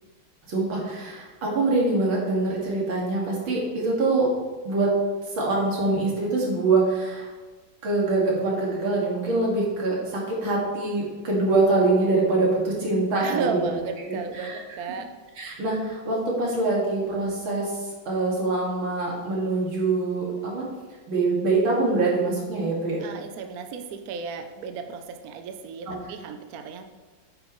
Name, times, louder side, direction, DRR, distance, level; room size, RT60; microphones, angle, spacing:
voice 1, 0.5-4.3 4.6-4.9 5.2-7.3 7.8-13.7 14.0-14.6 15.4-20.7 21.1-23.0 25.9-26.0, right 3 dB, 85° right, -4 dB, 2.9 m, -24 dB
voice 2, 13.2-15.1 23.0-26.8, right 5 dB, 60° right, 6 dB, 1.0 m, -33 dB
9.0 x 8.9 x 3.1 m, 1.3 s
omnidirectional pair, 2.1 m